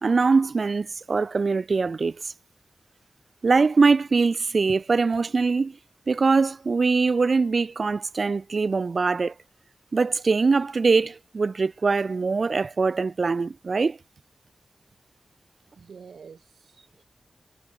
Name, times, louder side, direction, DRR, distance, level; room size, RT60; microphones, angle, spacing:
voice 1, 0.0-2.3 3.4-5.8 6.1-9.3 9.9-14.0, right 4 dB, 60° right, 1.4 m, -22 dB
voice 2, 15.8-17.1, right 6 dB, 85° right, 6.9 m, -47 dB
cardioid pair, 45°, 0 cm